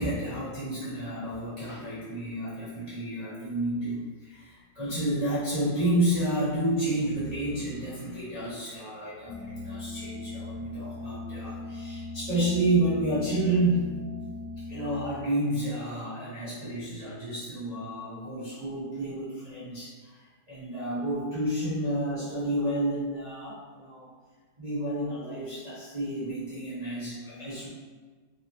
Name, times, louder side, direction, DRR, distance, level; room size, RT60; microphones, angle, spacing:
voice 1, 0.0-13.9 14.7-20.2 20.5-24.1 24.6-27.7, right 1 dB, 65° right, -13 dB, 0.4 m, -30 dB
sound 1, 9.3-15.0, left 3 dB, 80° left, 0.9 m, -39 dB
3.4 x 2.9 x 2.7 m, 1.4 s
omnidirectional pair, 2.2 m